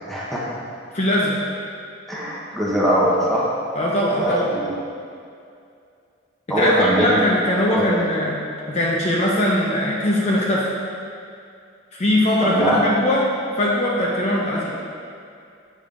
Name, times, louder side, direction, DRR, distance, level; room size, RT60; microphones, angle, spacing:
voice 1, 0.1-0.4 2.1-3.5 4.2-4.7 6.5-7.2 7.7-7.8 12.4-12.9, equal, ahead, -7 dB, 0.9 m, -21 dB
voice 2, 0.9-1.4 3.8-4.5 6.6-8.4 8.7-10.7 11.9-13.3 13.6-14.8, left 1 dB, 35° left, -4 dB, 0.6 m, -20 dB
8.6 x 5.1 x 2.5 m, 2.4 s
head